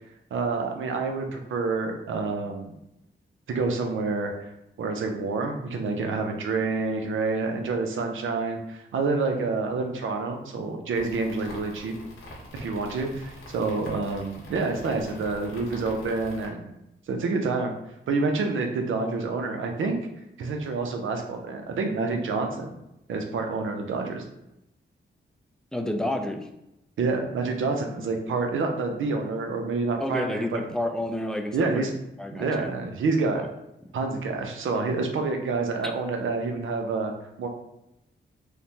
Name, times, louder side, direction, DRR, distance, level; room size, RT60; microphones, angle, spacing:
voice 1, 0.3-2.7 3.5-4.3 4.8-11.9 12.5-16.7 17.1-17.8 18.1-20.0 20.4-22.7 23.1-24.2 27.0-30.6 31.5-31.9 32.3-33.4 33.9-37.1 37.4-37.5, right 3 dB, 80° right, 4 dB, 0.5 m, -28 dB
sound 1, 10.9-16.5, left 1 dB, 80° left, 0.9 m, -44 dB
voice 2, 25.7-26.5 30.0-31.9 32.2-32.7 33.3-33.5 33.8-33.9, left 1 dB, 5° left, 3 dB, 0.4 m, -30 dB
3.1 x 2.1 x 2.7 m, 0.86 s
cardioid pair, 60°, 20 cm